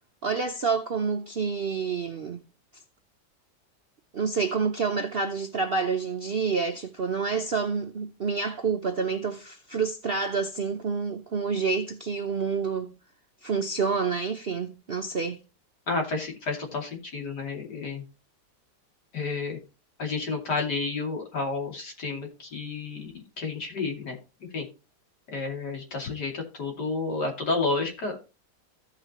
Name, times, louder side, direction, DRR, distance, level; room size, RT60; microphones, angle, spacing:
voice 1, 0.2-2.4 4.1-12.9 13.4-15.4, right 5 dB, 55° right, 0.7 m, -28 dB
voice 2, 15.9-18.0 19.1-19.6 20.0-24.2 24.5-24.6 25.3-28.3, left 3 dB, 70° left, 3.2 m, -31 dB
15.0 x 5.8 x 3.0 m
omnidirectional pair, 1.8 m